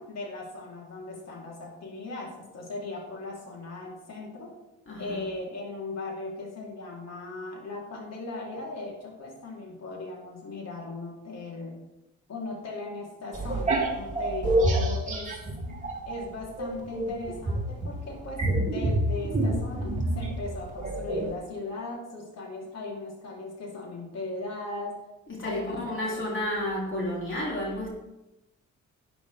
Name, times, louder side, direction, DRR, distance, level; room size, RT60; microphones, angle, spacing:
voice 1, 0.0-4.5 5.0-11.8 12.3-15.3 16.1-25.0 25.4-26.2, left 2 dB, 60° left, -2 dB, 3.9 m, -38 dB
voice 2, 4.9-5.2 25.3-27.9, left 1 dB, 40° left, -3 dB, 3.6 m, -31 dB
sound 1, 13.3-16.2 16.6-21.4, right 1 dB, 25° right, 3.0 m, -27 dB
11.0 x 10.0 x 3.6 m, 0.95 s
cardioid pair, 90°, 30 cm